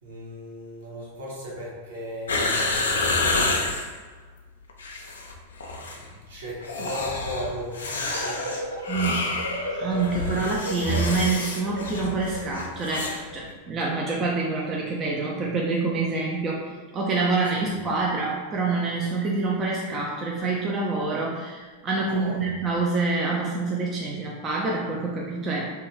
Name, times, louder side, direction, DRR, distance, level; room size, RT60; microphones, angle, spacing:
voice 1, 0.0-3.3 5.9-8.5 17.6-17.7 22.1-22.5, left 1 dB, 60° right, -5 dB, 0.9 m, -36 dB
sound 1, 2.3-3.9 4.7-5.4 5.6-6.0 6.6-13.2 13.5-13.6, left 2 dB, 65° left, 0.3 m, -28 dB
sound 2, 8.1-13.4, equal, 80° right, 0.5 m, -35 dB
voice 2, 8.9-9.4 9.7-25.7, right 3 dB, 25° right, -3 dB, 0.3 m, -27 dB
2.6 x 2.3 x 3.0 m, 1.4 s
figure-of-eight pair, 90°, 0 cm